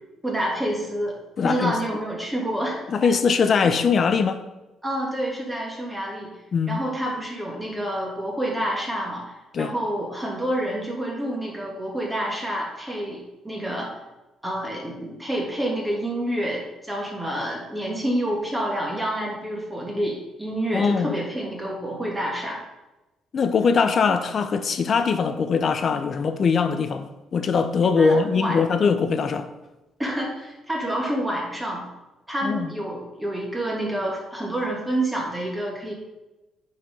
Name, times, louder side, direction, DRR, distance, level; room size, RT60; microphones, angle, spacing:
voice 1, 0.2-1.2 1.4-2.8 4.8-6.3 6.7-13.9 14.4-22.6 28.0-28.6 30.0-31.8 32.3-35.9, right 1 dB, 10° right, 2.8 m, -28 dB
voice 2, 1.4-1.8 2.9-4.4 6.5-6.8 9.5-9.7 20.7-21.2 23.3-29.5 32.4-32.7, left 5 dB, 45° left, 0.9 m, -21 dB
8.9 x 5.0 x 5.6 m
cardioid pair, 110°, 0 cm